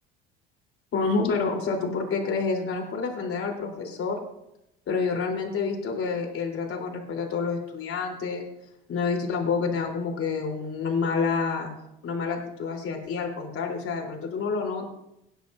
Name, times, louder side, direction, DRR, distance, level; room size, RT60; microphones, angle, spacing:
voice 1, 0.9-4.2 4.9-8.5 8.9-11.7 12.0-14.8, left 4 dB, 45° left, 1 dB, 3.7 m, -28 dB
17.5 x 10.5 x 2.6 m, 0.84 s
hypercardioid pair, 75°, 30 cm